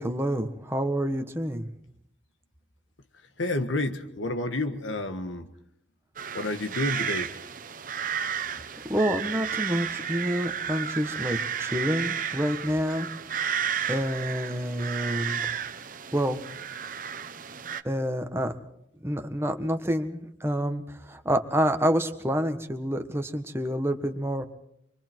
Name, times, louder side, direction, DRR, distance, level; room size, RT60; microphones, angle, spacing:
voice 1, 0.0-1.7 8.5-8.6 8.9-13.1 13.4-13.6 13.9-15.5 16.1-16.4 17.8-18.5 19.0-24.5, equal, 15° right, 6 dB, 1.4 m, -28 dB
voice 2, 3.4-5.5 6.3-7.3, left 2 dB, 85° left, 7 dB, 1.6 m, -29 dB
sound 1, 6.2-17.8, right 8 dB, 45° right, 1.0 m, -33 dB
27.0 x 23.5 x 4.6 m, 0.74 s
head